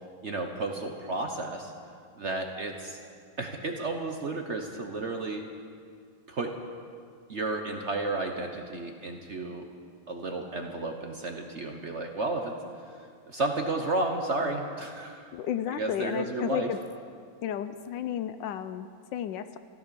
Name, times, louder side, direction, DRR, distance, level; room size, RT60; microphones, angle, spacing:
voice 1, 0.2-1.7 2.2-3.0 3.4-5.5 6.3-6.6 7.3-9.7 10.1-12.6 13.3-15.3 15.7-16.7, right 2 dB, 50° right, 3 dB, 0.9 m, -32 dB
voice 2, 15.3-16.8 17.4-19.6, left 10 dB, 75° left, 11 dB, 1.2 m, -33 dB
14.5 x 13.0 x 6.8 m, 2.2 s
omnidirectional pair, 2.2 m